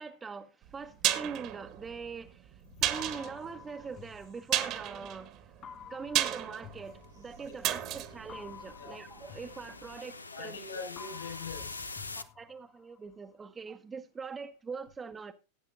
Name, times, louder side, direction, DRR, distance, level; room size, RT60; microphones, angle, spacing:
voice 1, 0.0-5.5 5.8-10.6 12.1-15.3, right 5 dB, 15° right, 0.9 m, -43 dB
sound 1, 0.6-9.5 9.8-9.9, right 13 dB, 40° right, 1.3 m, -34 dB
sound 2, 3.0-5.0 5.6-7.7 8.3-10.6 11.0-13.0, left 8 dB, 25° left, 0.9 m, -51 dB
sound 3, 6.3-12.2, left 3 dB, 80° left, 0.7 m, -46 dB
voice 2, 10.3-11.9, left 5 dB, 60° left, 6.1 m, -42 dB
18.0 x 9.2 x 2.6 m
figure-of-eight pair, 90°, 0 cm